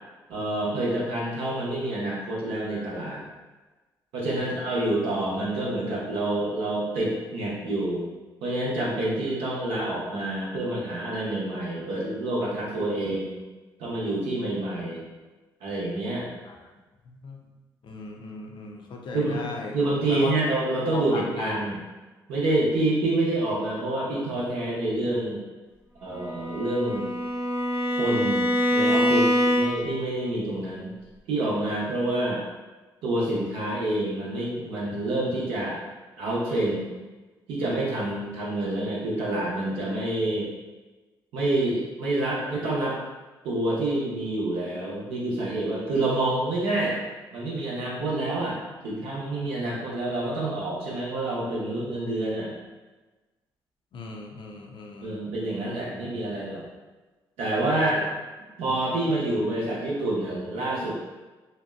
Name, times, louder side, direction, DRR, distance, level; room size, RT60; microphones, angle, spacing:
voice 1, 0.3-3.2 4.1-8.1 8.4-13.4 13.8-15.0 15.6-16.3 19.1-19.4 19.7-21.8 22.3-25.4 26.0-27.1 27.9-30.9 31.3-32.4 33.0-35.8 36.2-36.9 37.5-40.5 41.3-43.0 43.4-47.0 47.3-52.5 55.0-56.6 57.4-58.1 58.6-60.9, right 2 dB, 80° right, -6 dB, 0.7 m, -27 dB
voice 2, 17.1-17.4 17.8-19.8 20.1-20.4 20.9-21.6 53.9-55.2 57.7-58.1, left 3 dB, 55° left, 1 dB, 0.5 m, -36 dB
Bowed string instrument, 26.2-30.0, equal, 25° right, 0.6 m, -24 dB
2.7 x 2.1 x 2.3 m, 1.2 s
hypercardioid pair, 50°, 10 cm